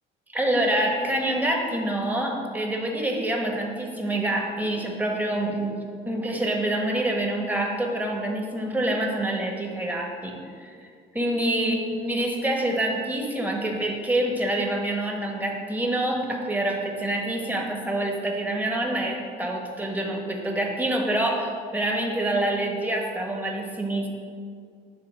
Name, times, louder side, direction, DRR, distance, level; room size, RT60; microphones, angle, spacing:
voice 1, 0.3-5.7 6.1-10.8 11.1-24.1, right 1 dB, 10° right, 0 dB, 1.5 m, -26 dB
9.6 x 4.1 x 7.5 m, 2.2 s
cardioid pair, 105°, 19 cm